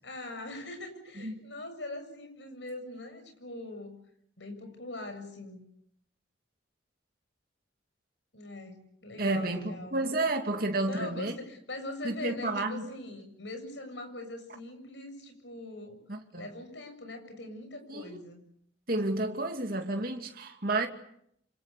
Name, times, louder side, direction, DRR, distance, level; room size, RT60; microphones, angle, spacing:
voice 1, 0.0-4.0 4.4-5.6 8.3-10.0 10.9-16.0 16.3-18.4, left 2 dB, 75° left, 7.4 m, -42 dB
voice 2, 9.2-11.3 12.0-12.8 16.1-16.5 17.9-18.2 18.9-20.9, right 2 dB, 50° right, 2.5 m, -31 dB
27.5 x 27.0 x 6.9 m
head